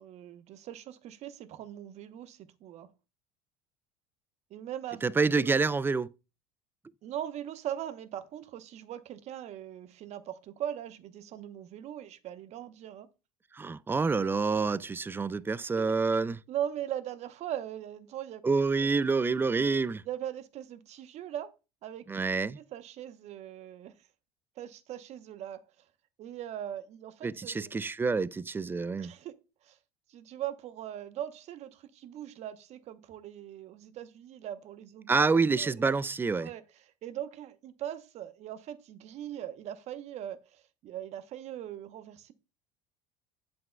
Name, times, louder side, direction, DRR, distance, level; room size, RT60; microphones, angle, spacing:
voice 1, 0.0-2.9 4.5-5.6 7.0-13.1 15.8-15.9 16.5-18.4 20.1-21.5 21.8-22.0 22.6-23.9 24.6-25.6 26.2-27.8 29.0-29.3 29.6-29.8 30.1-35.2 35.6-35.9 36.4-36.6 37.0-42.3, right 11 dB, 50° right, 0.9 m, -40 dB
voice 2, 5.0-6.1 13.5-16.4 18.4-20.0 22.1-22.6 27.2-29.1 35.1-36.5, right 4 dB, 15° right, 0.3 m, -27 dB
7.9 x 7.4 x 2.2 m
hypercardioid pair, 85°, 14 cm